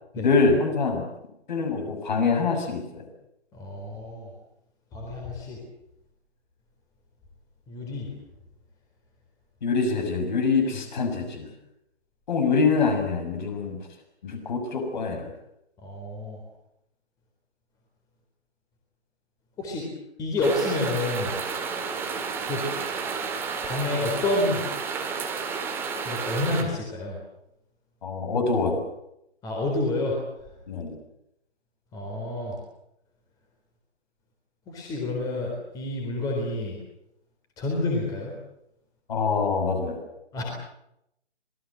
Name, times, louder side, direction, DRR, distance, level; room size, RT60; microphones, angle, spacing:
voice 1, 0.2-1.1 1.5-3.0 9.6-11.5 12.3-13.8 14.2-15.3 28.0-28.8 30.7-31.0 39.1-40.0, left 4 dB, 45° left, 6 dB, 6.7 m, -25 dB
voice 2, 3.5-4.3 4.9-5.6 7.7-8.1 15.8-16.4 19.6-19.9 20.2-21.3 22.4-22.6 23.6-24.6 26.0-27.2 29.4-30.1 31.9-32.6 34.7-36.8 37.6-38.4 40.3-40.4, left 2 dB, 10° left, 0 dB, 4.0 m, -28 dB
sound 1, 20.4-26.6, right 5 dB, 5° right, 2.0 m, -31 dB
26.5 x 20.5 x 7.8 m, 0.80 s
figure-of-eight pair, 155°, 33 cm